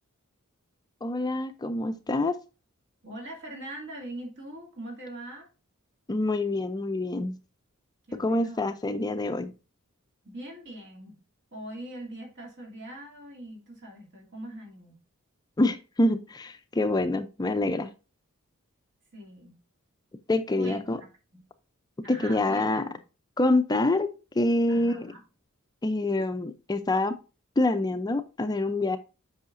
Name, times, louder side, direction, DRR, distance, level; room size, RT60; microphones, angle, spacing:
voice 1, 1.0-2.4 6.1-7.3 8.2-9.5 15.6-17.9 20.3-21.0 22.1-22.8 23.4-24.1 24.4-25.1 25.8-27.1 27.6-29.0, left 2 dB, 20° left, 9 dB, 0.4 m, -26 dB
voice 2, 3.0-5.5 8.1-8.8 10.2-11.2 11.5-15.0 19.1-19.6 20.5-21.4 22.0-23.0 24.7-25.2, right 1 dB, 55° right, 0 dB, 2.6 m, -42 dB
8.4 x 5.6 x 2.5 m, 0.32 s
head